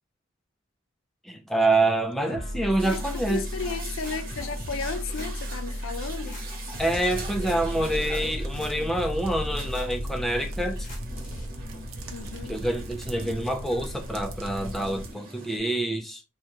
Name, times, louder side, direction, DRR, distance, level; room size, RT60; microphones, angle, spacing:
voice 1, 1.2-3.4 6.8-10.9 12.5-16.2, right 1 dB, ahead, 0.4 m, -26 dB
voice 2, 2.3-6.4 12.1-12.6, left 5 dB, 75° left, 0.5 m, -35 dB
sound 1, 2.3-11.5, equal, 40° left, 0.9 m, -35 dB
sound 2, 2.8-15.6, right 2 dB, 45° right, 1.1 m, -43 dB
sound 3, 6.7-15.1, equal, 75° right, 0.6 m, -38 dB
3.2 x 2.3 x 2.8 m
head